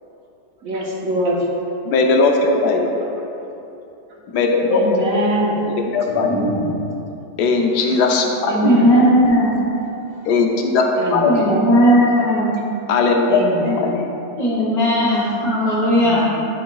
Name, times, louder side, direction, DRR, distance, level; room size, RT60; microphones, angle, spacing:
voice 1, 0.6-1.5 3.0-3.3 4.7-5.6 8.4-8.9 11.0-12.4 13.3-14.1 15.9-16.4, right 1 dB, 60° right, -3 dB, 1.4 m, -24 dB
voice 2, 1.8-2.9 4.3-5.0 5.9-6.3 7.4-8.5 10.3-10.8 11.1-11.3 12.9-13.4 13.7-14.0, left 4 dB, 85° left, 2 dB, 1.2 m, -18 dB
voice 3, 6.1-6.7 8.6-9.5 11.2-12.5 14.4-16.2, equal, 65° left, -8 dB, 1.5 m, -16 dB
10.5 x 5.1 x 2.3 m, 2.9 s
omnidirectional pair, 1.7 m